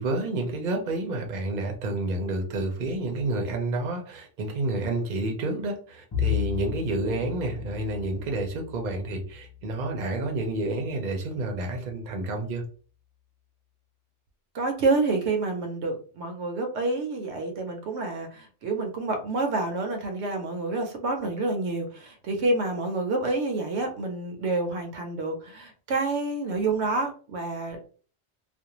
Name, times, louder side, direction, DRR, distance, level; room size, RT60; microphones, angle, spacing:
voice 1, 0.0-12.6, right 2 dB, 50° right, 2 dB, 0.7 m, -29 dB
Bowed string instrument, 6.1-10.7, left 9 dB, 35° left, 0.4 m, -34 dB
voice 2, 14.5-27.9, right 3 dB, 75° right, 4 dB, 0.9 m, -28 dB
2.5 x 2.1 x 2.9 m, 0.40 s
omnidirectional pair, 1.2 m